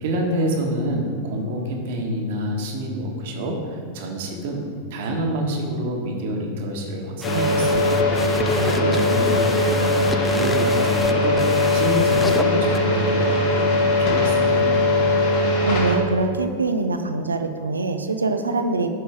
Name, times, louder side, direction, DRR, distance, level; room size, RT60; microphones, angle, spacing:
voice 1, 0.0-4.6 4.9-8.1 8.4-11.4 11.7-14.8, right 1 dB, 50° right, 1 dB, 1.6 m, -27 dB
sound 1, 7.2-16.0, left 2 dB, 50° left, 1.8 m, -20 dB
sound 2, 7.2-12.8, left 2 dB, 5° left, 0.4 m, -31 dB
voice 2, 15.3-18.9, right 3 dB, 75° right, 7 dB, 0.7 m, -24 dB
11.5 x 5.5 x 4.9 m, 2.1 s
figure-of-eight pair, 90°, 0 cm